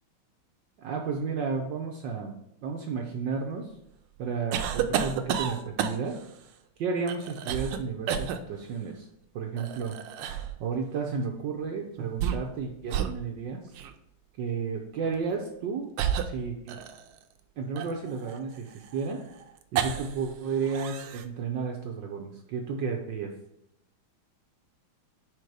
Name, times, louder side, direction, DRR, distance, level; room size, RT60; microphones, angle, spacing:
voice 1, 0.8-2.3 2.6-3.7 4.2-6.1 6.8-9.1 9.3-9.9 10.6-13.7 14.4-16.8 17.6-19.2 19.7-23.3, right 5 dB, 70° right, 2 dB, 1.2 m, -32 dB
sound 1, 4.5-6.3 7.1-7.8 8.1-8.4 9.6-10.6 12.0-12.6 12.9-13.2 13.7-13.9 15.0-15.2 16.0-17.2 17.8-20.3 20.5-21.2, right 9 dB, 85° right, 1.5 m, -31 dB
5.1 x 4.6 x 4.8 m, 0.79 s
omnidirectional pair, 2.3 m